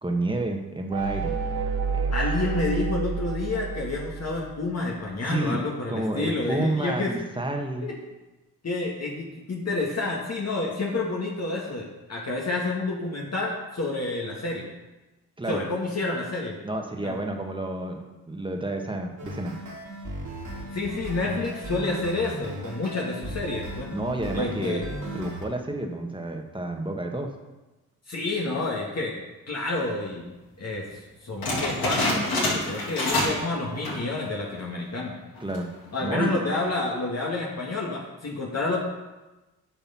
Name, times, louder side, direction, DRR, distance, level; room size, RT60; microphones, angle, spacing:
voice 1, 0.0-1.3 1.9-2.1 5.3-5.6 5.9-7.9 15.4-15.7 16.6-19.5 23.9-24.8 25.1-27.3 35.4-35.7 36.0-36.4, right 2 dB, 10° right, 2 dB, 1.8 m, -30 dB
sound 1, 0.9-4.7, right 5 dB, 75° right, 1.2 m, -29 dB
voice 2, 2.1-7.1 7.8-8.0 8.6-14.7 15.5-16.5 17.0-17.2 20.7-23.9 24.3-24.9 28.1-29.2 29.5-30.3 30.6-35.2 35.9-38.8, left 2 dB, 35° left, -3 dB, 2.1 m, -29 dB
sound 2, 19.2-25.4, right 1 dB, 45° right, 2.7 m, -36 dB
sound 3, 31.4-33.5 33.7-34.1 34.6-34.7 35.4-35.7, left 1 dB, 60° left, 3.6 m, -26 dB
9.3 x 5.5 x 5.8 m, 1.1 s
hypercardioid pair, 50°, 42 cm